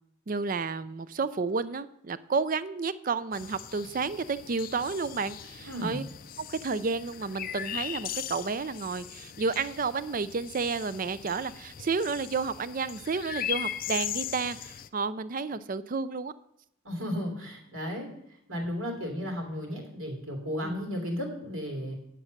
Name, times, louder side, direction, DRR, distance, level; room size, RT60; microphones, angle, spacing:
voice 1, 0.3-6.0 6.4-16.3 20.6-20.8, right 4 dB, 40° right, 15 dB, 0.4 m, -31 dB
sound 1, 3.3-14.9, left 10 dB, 40° left, 0.4 m, -39 dB
voice 2, 5.6-6.0 16.8-18.1 18.5-22.0, equal, 80° right, 1 dB, 3.0 m, -34 dB
10.0 x 7.4 x 6.6 m, 0.77 s
head